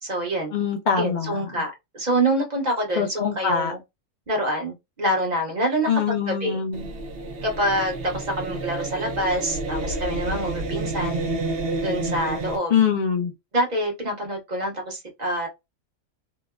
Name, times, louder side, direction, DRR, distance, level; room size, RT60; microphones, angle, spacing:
voice 1, 0.0-0.5 1.0-3.8 4.3-6.6 7.4-11.2 11.8-12.7 13.5-15.5, right 1 dB, 35° right, 1.0 m, -26 dB
voice 2, 0.5-1.5 3.0-3.7 5.9-6.9 12.7-13.3, left 7 dB, 75° left, 0.4 m, -23 dB
sound 1, 6.7-12.6, right 2 dB, 55° right, 0.7 m, -29 dB
2.8 x 2.0 x 2.2 m
omnidirectional pair, 1.4 m